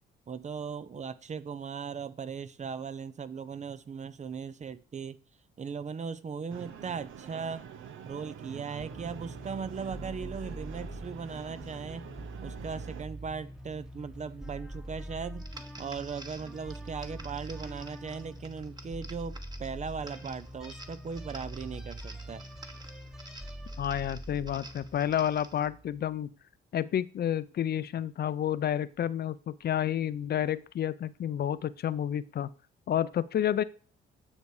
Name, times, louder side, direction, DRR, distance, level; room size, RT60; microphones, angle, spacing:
voice 1, 0.3-5.2 5.6-7.7 8.0-12.1 12.4-15.5 15.8-22.4, right 6 dB, 35° right, 16 dB, 0.7 m, -38 dB
sound 1, 6.5-13.0, right 8 dB, 80° right, 1.1 m, -45 dB
sound 2, 8.8-26.1, equal, 5° right, 1.2 m, -44 dB
sound 3, 15.4-25.7, right 2 dB, 20° right, 1.3 m, -50 dB
voice 2, 23.8-26.3 26.7-32.5 32.9-33.6, left 10 dB, 55° left, 16 dB, 0.6 m, -30 dB
9.7 x 6.6 x 4.8 m, 0.41 s
cardioid pair, 90°, 20 cm